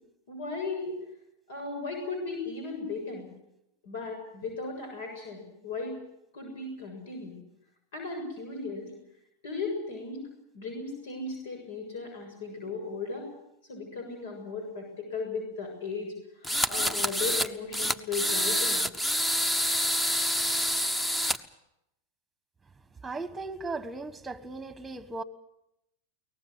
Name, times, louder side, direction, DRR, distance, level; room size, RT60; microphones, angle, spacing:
voice 1, 0.3-0.9 1.5-3.3 3.8-6.0 6.3-7.4 7.9-8.9 9.4-10.2 10.5-13.3 13.7-18.8, left 4 dB, 75° left, 3 dB, 7.3 m, -36 dB
sound 1, 16.4-17.5 17.7-21.4, equal, 10° left, 1.0 m, -27 dB
voice 2, 23.0-25.2, right 3 dB, 10° right, 12 dB, 1.5 m, -37 dB
23.0 x 19.0 x 8.0 m, 0.84 s
hypercardioid pair, 120°, 0 cm